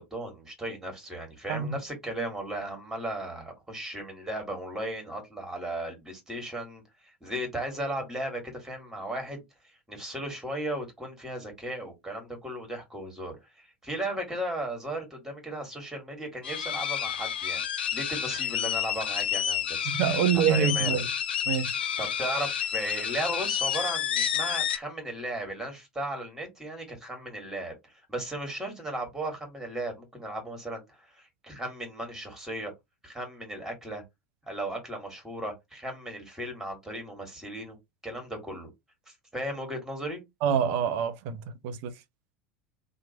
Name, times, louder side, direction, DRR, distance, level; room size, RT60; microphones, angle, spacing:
voice 1, 0.0-21.0 22.0-32.7 33.0-34.0 34.5-37.8 38.0-38.7 39.1-40.2, right 1 dB, 5° right, 1.5 m, -36 dB
sound 1, 16.4-24.8, left 9 dB, 70° left, 0.3 m, -30 dB
voice 2, 19.9-21.1 21.5-21.8 40.4-41.9, right 8 dB, 50° right, 0.5 m, -26 dB
3.0 x 2.4 x 2.7 m
figure-of-eight pair, 75°, 6 cm